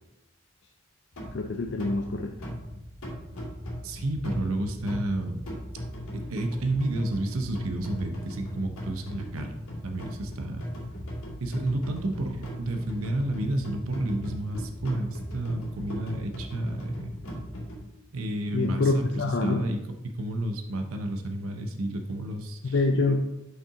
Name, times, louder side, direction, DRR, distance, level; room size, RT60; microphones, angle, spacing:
sound 1, 1.1-17.8, equal, 90° left, 2.1 m, -38 dB
voice 1, 1.3-2.3 18.5-19.6 22.6-23.3, left 3 dB, 55° left, 3 dB, 0.4 m, -26 dB
voice 2, 3.8-5.4 6.1-9.5 9.8-10.6 11.4-17.1 18.1-22.7, right 1 dB, 85° right, 5 dB, 0.7 m, -31 dB
5.8 x 5.6 x 3.6 m, 0.90 s
head